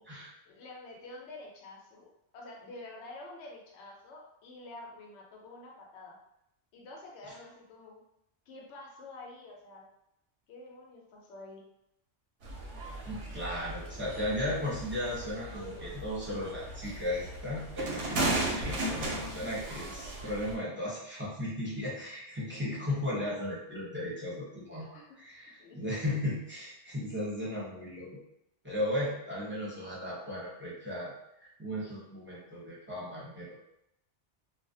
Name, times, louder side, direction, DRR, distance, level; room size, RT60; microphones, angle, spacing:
voice 1, 0.5-6.1 6.7-8.0 8.5-9.8 10.5-11.6 14.1-14.2 24.8-25.2 25.6-25.9 28.9-29.1 29.4-29.6, left 2 dB, 80° left, -2 dB, 0.9 m, -48 dB
sound 1, 12.4-20.6, right 1 dB, 85° right, 0.9 m, -36 dB
voice 2, 13.0-28.2 28.6-31.1 31.4-33.6, left 1 dB, 15° right, -7 dB, 0.6 m, -36 dB
2.4 x 2.0 x 2.6 m, 0.81 s
omnidirectional pair, 1.2 m